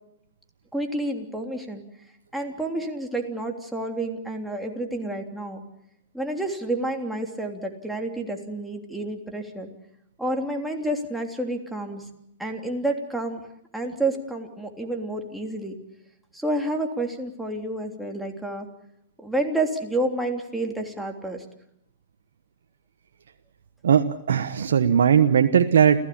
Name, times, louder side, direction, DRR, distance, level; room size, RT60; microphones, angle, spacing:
voice 1, 0.7-1.8 2.3-5.6 6.1-9.7 10.2-12.1 12.4-13.4 13.7-15.8 16.3-18.7 19.2-21.4, right 1 dB, ahead, 1 dB, 3.3 m, -29 dB
voice 2, 23.8-26.0, right 8 dB, 80° right, 7 dB, 1.2 m, -19 dB
29.5 x 15.5 x 8.7 m, 0.79 s
hypercardioid pair, 125°, 0 cm